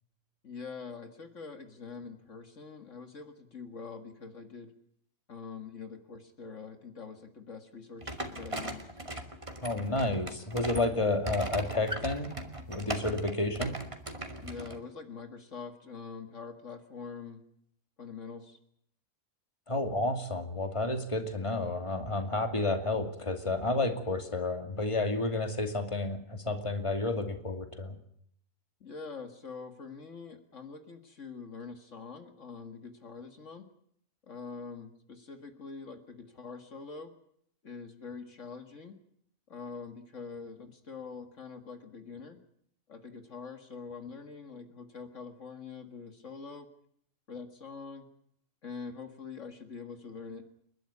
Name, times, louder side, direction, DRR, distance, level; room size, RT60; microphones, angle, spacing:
voice 1, 0.4-4.7 5.3-8.9 14.4-17.4 18.0-18.6 28.8-33.7 34.3-37.1 37.6-39.0 39.5-42.4 42.9-46.7 47.3-48.1 48.6-50.5, left 5 dB, 65° left, 7 dB, 2.1 m, -44 dB
sound 1, 8.0-14.8, right 1 dB, 25° right, 2.4 m, -38 dB
voice 2, 9.6-12.3 12.7-13.8 19.7-28.0, left 2 dB, 20° left, 6 dB, 2.6 m, -31 dB
30.0 x 12.0 x 9.7 m, 0.69 s
omnidirectional pair, 1.4 m